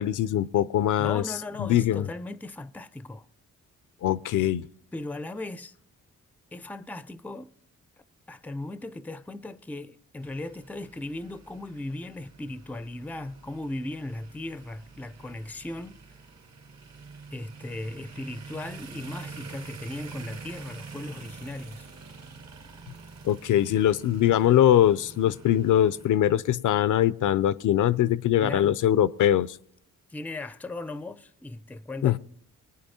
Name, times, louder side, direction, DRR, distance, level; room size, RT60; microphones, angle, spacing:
voice 1, 0.0-1.2 1.6-2.0 4.0-4.7 23.2-29.6 32.0-32.2, left 11 dB, 65° left, 0.4 m, -22 dB
voice 2, 1.0-3.3 4.9-5.7 6.5-7.5 8.3-16.0 17.3-21.9 28.4-28.8 30.1-32.2, left 2 dB, 5° left, 0.4 m, -37 dB
sound 1, 10.2-26.1, right 4 dB, 50° right, 1.2 m, -46 dB
21.0 x 9.7 x 2.8 m
cardioid pair, 65°, 33 cm